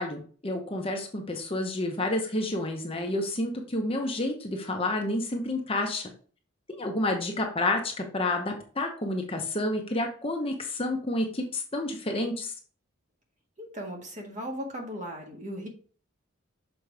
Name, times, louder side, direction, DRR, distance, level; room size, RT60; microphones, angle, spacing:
voice 1, 0.0-6.1 6.8-12.5, left 1 dB, 25° left, 2 dB, 0.9 m, -29 dB
voice 2, 13.6-15.7, equal, 35° right, 1 dB, 1.6 m, -37 dB
6.5 x 4.6 x 3.4 m, 0.42 s
head